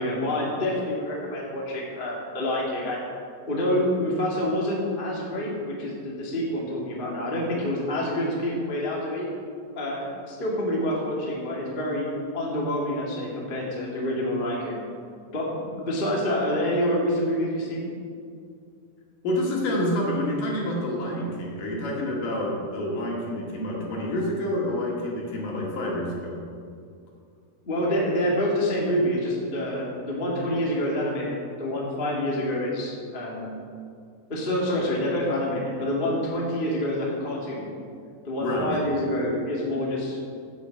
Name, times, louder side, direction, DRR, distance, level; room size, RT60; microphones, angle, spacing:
voice 1, 0.0-3.0 3.5-9.3 9.7-14.8 15.3-17.9 27.6-33.5 34.3-37.7 38.2-40.2, left 1 dB, 30° left, -4 dB, 1.0 m, -27 dB
voice 2, 19.2-26.4 38.4-38.7, left 1 dB, 60° left, -3 dB, 3.4 m, -28 dB
15.5 x 7.3 x 5.2 m, 2.3 s
omnidirectional pair, 4.8 m